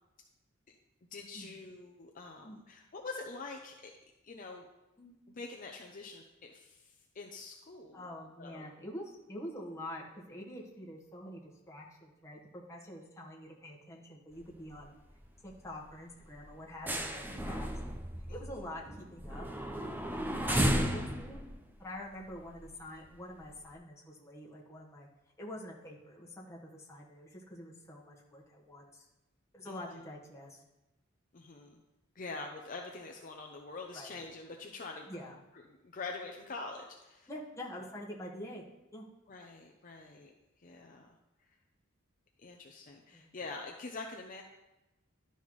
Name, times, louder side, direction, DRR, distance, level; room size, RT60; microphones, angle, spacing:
voice 1, 1.1-3.9 4.2-4.7 5.3-8.0 8.4-8.7 18.3-18.4 29.7-30.0 31.3-31.8 32.2-35.1 35.5-37.3 39.3-40.3 40.6-41.1 42.4-44.4, left 3 dB, 40° left, 1 dB, 0.6 m, -45 dB
voice 2, 7.9-14.9 15.4-18.0 18.3-19.4 20.5-21.4 21.8-25.1 25.4-29.0 29.5-30.6 33.9-34.2 35.1-35.4 37.3-38.6 38.9-39.1 43.1-43.3, left 1 dB, 15° left, -3 dB, 1.3 m, -46 dB
sound 1, 14.3-14.8 15.1-15.3 15.7-15.8 16.2-22.9 23.4-23.5, equal, 10° right, 0.5 m, -34 dB
12.0 x 5.5 x 3.1 m, 0.99 s
head